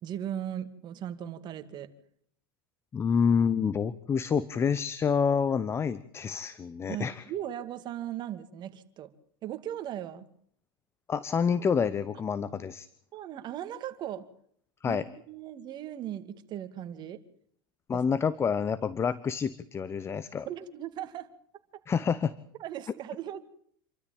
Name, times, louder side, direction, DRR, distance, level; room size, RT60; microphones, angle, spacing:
voice 1, 0.0-1.9 6.9-9.1 9.4-10.3 13.1-14.3 14.9-17.2 17.9-18.0 20.5-21.3 22.6-23.4, right 11 dB, 40° right, 10 dB, 2.4 m, -38 dB
voice 2, 2.9-7.2 11.1-12.9 14.8-15.0 17.9-20.5 21.9-22.3, left 6 dB, 20° left, 17 dB, 1.0 m, -28 dB
28.0 x 13.0 x 8.9 m, 0.64 s
supercardioid pair, 120°, 12 cm